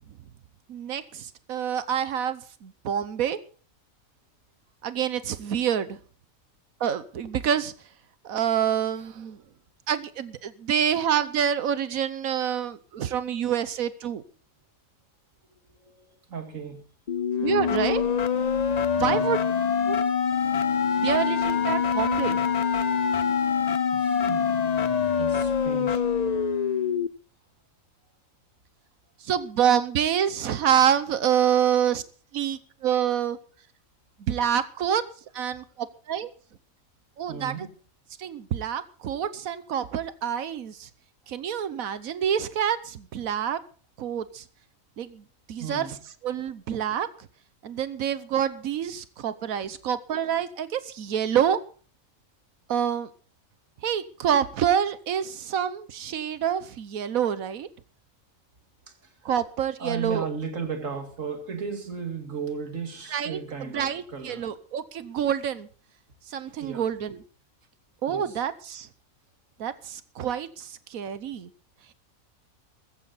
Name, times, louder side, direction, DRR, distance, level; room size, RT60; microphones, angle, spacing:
voice 1, 0.7-3.4 4.8-6.0 6.8-7.7 8.2-9.4 9.9-14.2 17.4-18.0 19.0-19.4 19.8-20.1 21.0-22.4 29.2-32.0 32.3-33.4 34.2-35.0 35.3-36.3 37.2-37.5 38.2-40.9 41.3-43.6 44.0-44.4 45.0-45.2 45.5-45.9 46.2-47.3 47.6-51.6 52.7-53.1 53.8-57.7 59.2-60.3 63.1-65.7 66.3-67.2 68.0-68.9 69.6-71.5, right 9 dB, 85° right, 1.3 m, -27 dB
voice 2, 15.8-16.8 19.0-19.3 23.9-24.7 25.2-26.0 37.3-37.7 45.6-46.0 59.8-64.5 66.5-66.9 68.1-68.3, right 6 dB, 70° right, 2.6 m, -35 dB
sound 1, 17.1-27.1, left 6 dB, 40° left, 0.6 m, -25 dB
15.0 x 15.0 x 4.1 m
omnidirectional pair, 1.4 m